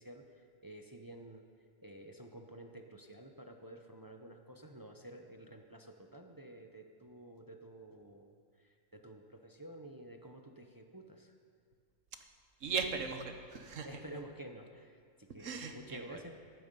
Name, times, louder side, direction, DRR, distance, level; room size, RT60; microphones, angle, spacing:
voice 1, 0.0-1.4 1.8-11.3 13.8-16.4, right 1 dB, 20° right, 4 dB, 0.6 m, -51 dB
voice 2, 12.6-13.9 15.4-16.2, right 5 dB, 70° right, 6 dB, 1.5 m, -38 dB
14.0 x 11.0 x 5.4 m, 2.2 s
omnidirectional pair, 1.4 m